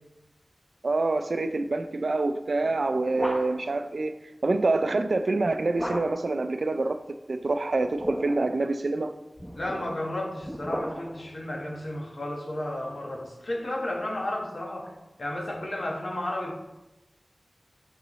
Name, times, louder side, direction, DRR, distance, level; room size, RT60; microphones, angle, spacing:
voice 1, 0.8-4.1 4.4-7.0 7.3-9.1, right 3 dB, 75° right, 8 dB, 0.4 m, -26 dB
sound 1, 2.6-3.8 5.8-6.4 7.8-8.6 9.4-11.3, equal, 5° left, 0.9 m, -35 dB
voice 2, 9.5-14.9 15.2-16.6, left 1 dB, 75° left, -1 dB, 1.4 m, -33 dB
7.1 x 6.7 x 3.1 m, 0.98 s
wide cardioid pair, 65°, 0 cm